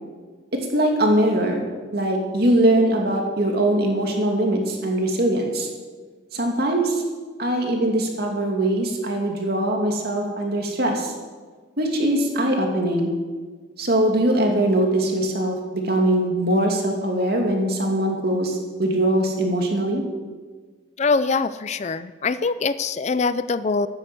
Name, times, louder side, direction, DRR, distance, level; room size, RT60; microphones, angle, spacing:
voice 1, 0.5-5.7 6.3-7.0 7.4-11.1 11.8-13.1 13.8-20.0, right 1 dB, 50° right, 1 dB, 2.6 m, -22 dB
voice 2, 21.0-23.9, left 4 dB, 35° left, 14 dB, 0.4 m, -23 dB
13.5 x 9.7 x 7.7 m, 1.5 s
head